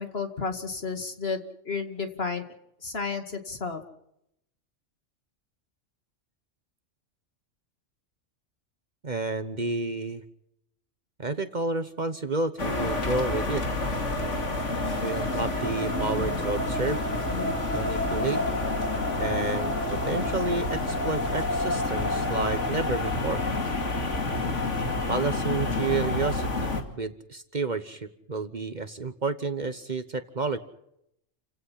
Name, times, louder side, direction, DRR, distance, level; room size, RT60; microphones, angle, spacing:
voice 1, 0.0-1.4 1.6-2.4 2.8-3.8, left 4 dB, 55° left, 6 dB, 2.4 m, -32 dB
voice 2, 9.0-10.2 11.2-13.6 15.0-17.0 17.7-18.4 19.2-23.4 25.1-30.6, right 3 dB, 40° right, 10 dB, 1.2 m, -30 dB
sound 1, 12.6-26.8, left 2 dB, 75° left, 2.9 m, -28 dB
29.5 x 17.0 x 5.8 m, 0.78 s
omnidirectional pair, 1.3 m